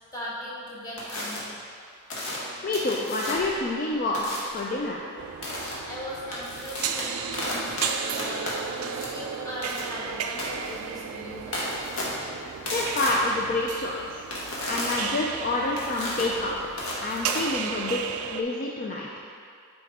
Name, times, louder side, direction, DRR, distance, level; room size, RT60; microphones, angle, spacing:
voice 1, 0.1-1.5 5.9-12.8 13.4-13.5, equal, 15° left, -7 dB, 1.3 m, -39 dB
sound 1, 1.0-1.4 2.1-3.6 4.1-4.6 5.4-5.7 6.2-18.1, left 1 dB, 85° left, 1.4 m, -34 dB
voice 2, 2.6-5.1 12.7-14.2 14.6-16.6 17.0-19.1, left 2 dB, 40° left, -2 dB, 0.4 m, -28 dB
sound 2, 5.2-18.4, right 8 dB, 85° right, 0.3 m, -35 dB
8.1 x 4.0 x 3.5 m, 2.3 s
head